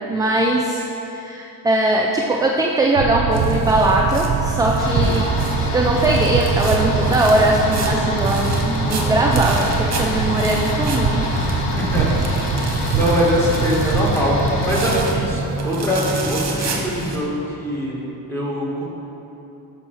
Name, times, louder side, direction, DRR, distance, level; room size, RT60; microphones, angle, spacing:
voice 1, 0.1-5.3 5.7-11.3, right 1 dB, 10° right, -1 dB, 0.3 m, -20 dB
sound 1, 3.0-15.5, right 6 dB, 65° right, 0.6 m, -25 dB
sound 2, 3.3-17.2, right 3 dB, 40° right, 1.0 m, -27 dB
sound 3, 4.8-15.0, left 3 dB, 80° left, 1.0 m, -26 dB
voice 2, 11.7-12.2 12.6-18.0 18.3-18.9, equal, 5° left, -5 dB, 1.5 m, -22 dB
7.0 x 5.5 x 4.4 m, 3.0 s
cardioid pair, 120°, 41 cm